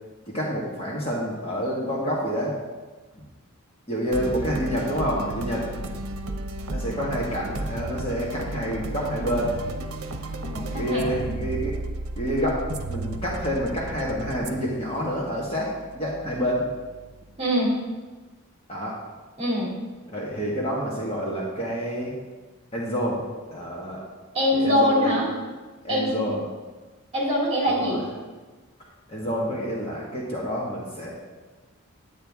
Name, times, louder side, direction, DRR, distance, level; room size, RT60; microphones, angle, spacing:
voice 1, 0.3-2.5 3.1-3.2 3.9-5.7 6.7-9.5 10.7-11.8 12.2-12.6 12.9-16.7 18.7-19.0 20.1-22.2 22.7-23.2 23.5-24.0 24.5-25.2 25.8-26.4 27.7-28.0 29.1-31.1, equal, 25° left, -5 dB, 1.6 m, -28 dB
sound 1, 4.1-17.5, right 2 dB, 85° right, 0.8 m, -34 dB
voice 2, 10.4-11.5 17.4-17.7 19.4-19.8 24.3-25.3 25.9-26.2 27.1-28.0, equal, 30° right, -4 dB, 2.8 m, -23 dB
9.8 x 8.9 x 3.6 m, 1.3 s
head